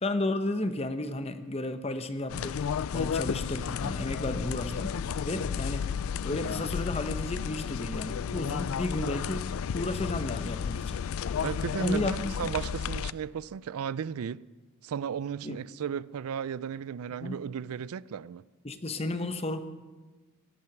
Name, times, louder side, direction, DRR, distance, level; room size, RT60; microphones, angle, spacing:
voice 1, 0.0-2.6 2.9-5.9 6.2-11.0 11.8-12.3 15.4-15.6 17.2-17.4 18.6-19.6, left 2 dB, 30° left, 0.8 m, -33 dB
sound 1, 2.3-13.1, left 7 dB, 75° left, 0.4 m, -32 dB
voice 2, 11.4-14.4 14.8-18.4, right 7 dB, 85° right, 0.4 m, -35 dB
17.5 x 11.0 x 5.9 m
head